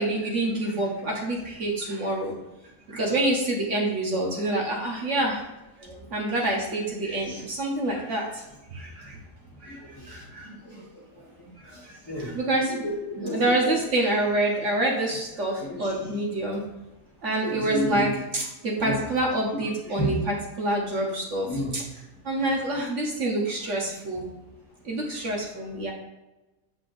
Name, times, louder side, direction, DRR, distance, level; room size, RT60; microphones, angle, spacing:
voice 1, 0.0-2.3 2.9-5.4 6.1-8.3 8.7-9.2 9.6-9.8 10.1-10.5 12.2-12.7 13.2-16.6 17.2-21.5 21.7-21.8 22.2-24.3 24.8-25.9, right 1 dB, 55° right, -1 dB, 1.3 m, -27 dB
voice 2, 9.6-10.3 10.6-11.3 11.7-12.4 12.7-13.7 15.6-15.9 17.4-18.1 18.8-19.0 19.5-19.6 20.0-20.1 21.5-21.8 25.1-25.3, equal, 15° left, -4 dB, 1.4 m, -32 dB
7.3 x 6.0 x 2.5 m, 1.0 s
omnidirectional pair, 1.5 m